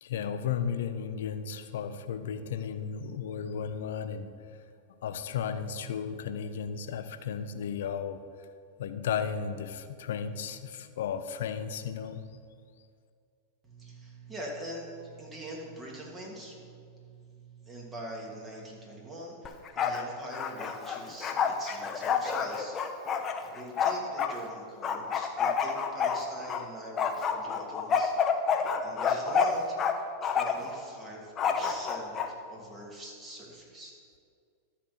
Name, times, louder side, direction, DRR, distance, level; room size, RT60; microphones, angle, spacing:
voice 1, 0.0-4.6 5.0-8.2 8.8-12.2, left 7 dB, 75° left, 10 dB, 0.7 m, -34 dB
voice 2, 13.6-23.0 23.5-28.1 28.8-29.8 30.2-33.9, right 1 dB, 20° right, -2 dB, 2.6 m, -44 dB
Bark, 19.5-20.0 20.3-24.3 24.8-26.6 27.0-29.9 30.2-30.7 31.4-32.3, left 6 dB, 30° left, 0.8 m, -28 dB
12.5 x 4.3 x 7.0 m, 2.3 s
hypercardioid pair, 110°, 0 cm